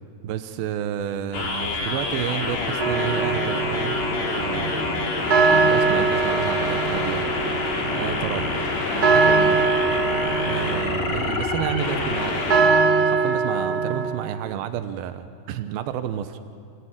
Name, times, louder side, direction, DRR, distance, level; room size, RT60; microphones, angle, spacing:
voice 1, 0.2-4.9 5.5-7.3 7.9-8.5 8.9-9.7 10.4-16.4, right 10 dB, 90° right, 10 dB, 2.8 m, -31 dB
sound 1, 1.3-12.6, left 4 dB, 80° left, 5.0 m, -27 dB
sound 2, 2.8-14.1, right 4 dB, 35° right, 1.8 m, -23 dB
29.5 x 18.0 x 8.8 m, 2.4 s
omnidirectional pair, 4.1 m